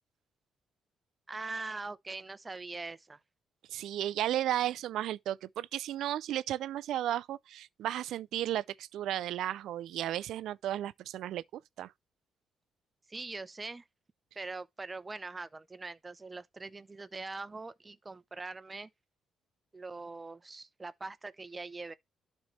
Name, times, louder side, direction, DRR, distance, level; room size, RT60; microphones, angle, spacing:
voice 1, 1.3-3.2 13.1-13.8 14.4-18.9 19.7-21.9, right 3 dB, 25° right, 0.7 m, -42 dB
voice 2, 3.7-11.4 11.8-11.9, right 12 dB, 80° right, 0.4 m, -34 dB
11.5 x 4.3 x 3.3 m
cardioid pair, 90°, 0 cm